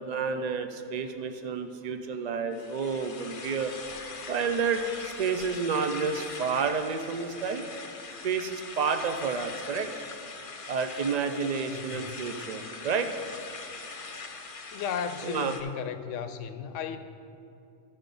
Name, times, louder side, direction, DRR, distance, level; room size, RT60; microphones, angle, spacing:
voice 1, 0.0-3.7 4.3-7.6 8.2-9.9 10.7-13.1 15.2-15.5, right 5 dB, 75° right, 7 dB, 0.3 m, -30 dB
sound 1, 2.5-15.6, left 4 dB, 40° left, 0.5 m, -42 dB
voice 2, 11.4-12.2 14.7-17.0, left 7 dB, 80° left, 10 dB, 0.9 m, -35 dB
12.0 x 5.1 x 5.3 m, 2.6 s
omnidirectional pair, 1.3 m